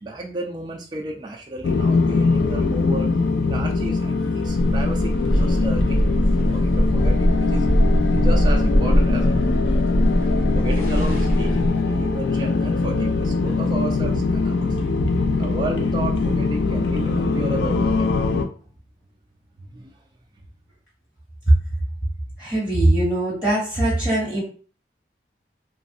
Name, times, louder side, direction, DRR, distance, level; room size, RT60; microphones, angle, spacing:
voice 1, 0.0-3.1 3.4-7.7 8.1-9.8 10.5-14.7 15.4-18.2 19.6-20.0, right 2 dB, 25° right, -1 dB, 0.3 m, -33 dB
sound 1, 1.6-18.5, left 3 dB, 90° left, 0.4 m, -22 dB
sound 2, 4.5-11.7, equal, 50° left, 1.2 m, -21 dB
voice 2, 22.4-24.4, right 1 dB, 20° left, -8 dB, 1.2 m, -20 dB
3.1 x 2.3 x 2.6 m, 0.41 s
head